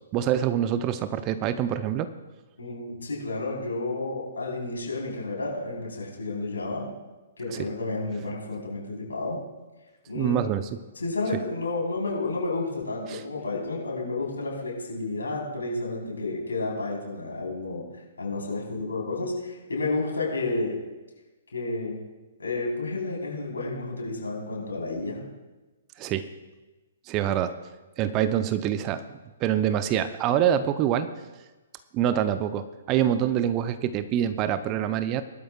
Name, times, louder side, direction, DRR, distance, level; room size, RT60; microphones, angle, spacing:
voice 1, 0.1-2.1 7.5-7.7 10.1-10.8 13.1-13.2 26.0-26.3 27.1-27.6 28.0-31.1 31.9-35.2, right 10 dB, 25° right, 12 dB, 0.6 m, -25 dB
voice 2, 2.6-6.8 7.4-9.4 10.1-10.4 11.0-17.9 18.2-20.8 21.5-22.0 22.4-25.2, left 2 dB, 70° left, -2 dB, 4.2 m, -31 dB
19.0 x 12.0 x 2.4 m, 1.2 s
figure-of-eight pair, 120°, 0 cm